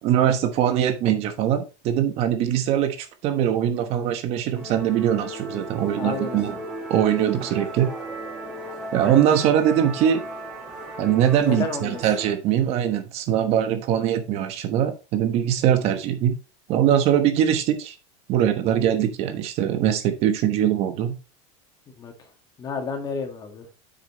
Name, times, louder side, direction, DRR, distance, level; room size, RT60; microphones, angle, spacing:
voice 1, 0.0-6.5 6.9-7.9 8.9-10.2 11.0-16.3 16.7-17.9 18.3-21.2, right 10 dB, 40° right, 8 dB, 1.1 m, -22 dB
Musical instrument, 4.5-12.3, right 1 dB, 5° right, 2.5 m, -36 dB
voice 2, 5.9-6.6 11.4-12.0 22.0-22.3 22.6-23.7, left 5 dB, 25° left, 5 dB, 1.7 m, -31 dB
8.3 x 6.4 x 3.1 m, 0.29 s
supercardioid pair, 160°, 15 cm